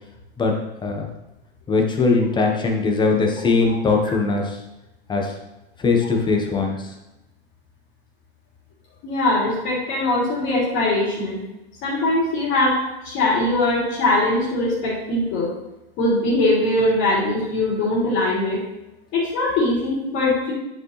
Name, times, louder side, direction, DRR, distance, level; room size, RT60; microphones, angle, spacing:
voice 1, 1.7-4.6 5.1-5.3 5.8-6.9, left 4 dB, 15° left, 2 dB, 1.1 m, -20 dB
voice 2, 9.0-11.4 11.8-15.5 16.0-18.6 19.1-20.5, left 2 dB, 40° left, -5 dB, 2.8 m, -21 dB
9.9 x 5.2 x 3.2 m, 0.97 s
hypercardioid pair, 125°, 31 cm